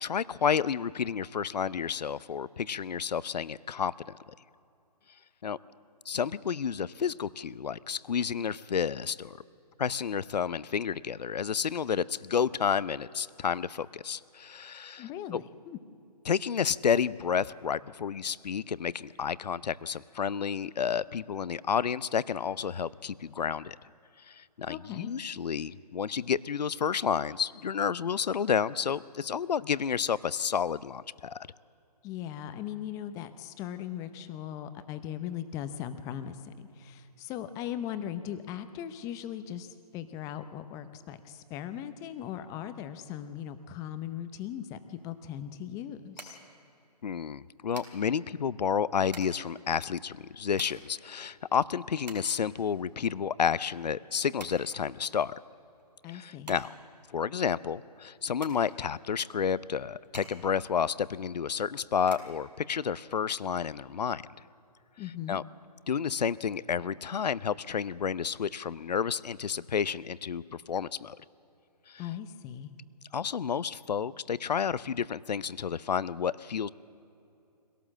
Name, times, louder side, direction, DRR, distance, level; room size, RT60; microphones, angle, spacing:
voice 1, 0.0-3.9 5.4-5.6 6.1-9.4 9.8-15.4 16.3-23.8 24.3-31.5 47.0-55.3 56.1-56.7 57.1-64.2 65.3-65.4 65.9-71.2 71.9-72.0 73.1-76.7, left 7 dB, 75° left, 19 dB, 0.6 m, -30 dB
voice 2, 15.0-15.8 24.7-25.1 32.0-46.4 56.0-56.5 65.0-65.4 72.0-72.7, left 10 dB, 15° left, 11 dB, 0.7 m, -39 dB
sound 1, 44.9-63.7, right 3 dB, 90° right, 3.9 m, -52 dB
23.0 x 17.5 x 7.4 m, 2.7 s
hypercardioid pair, 145°, 21 cm